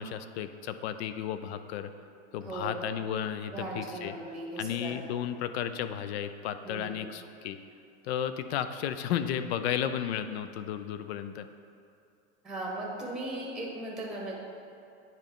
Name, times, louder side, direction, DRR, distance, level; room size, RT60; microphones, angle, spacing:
voice 1, 0.0-1.9 2.3-4.1 4.6-7.6 8.0-11.5, left 9 dB, 65° left, 11 dB, 0.5 m, -33 dB
voice 2, 2.4-2.9 3.5-5.0 6.6-7.0 12.4-14.3, right 1 dB, ahead, -3 dB, 0.9 m, -37 dB
9.7 x 3.9 x 3.6 m, 2.5 s
supercardioid pair, 135°, 35 cm